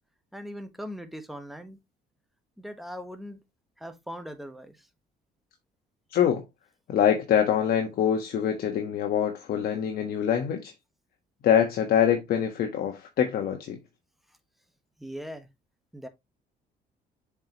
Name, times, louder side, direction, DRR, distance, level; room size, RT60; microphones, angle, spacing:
voice 1, 0.3-1.8 2.6-3.4 3.8-4.9 15.0-15.5 15.9-16.1, equal, ahead, 1.3 m, -40 dB
voice 2, 6.1-6.4 6.9-10.7 11.4-13.8, left 9 dB, 60° left, 1.3 m, -24 dB
7.3 x 4.8 x 3.0 m
cardioid pair, 110°, 17 cm